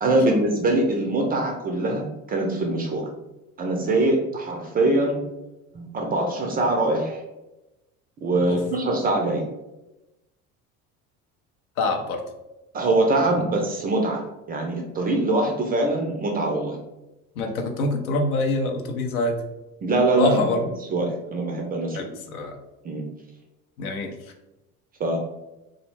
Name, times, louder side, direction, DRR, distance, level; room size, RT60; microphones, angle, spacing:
voice 1, 0.0-3.1 3.6-5.2 5.7-7.2 8.2-9.5 12.7-16.8 19.8-20.5 20.9-22.0 22.8-23.0 25.0-25.2, right 2 dB, 25° right, 2 dB, 0.3 m, -23 dB
voice 2, 11.8-12.2 13.4-13.5 17.4-19.4 20.2-20.7 21.9-22.6 23.8-24.1, left 2 dB, 75° left, 4 dB, 0.6 m, -25 dB
2.3 x 2.0 x 3.1 m, 0.97 s
hypercardioid pair, 65°, 44 cm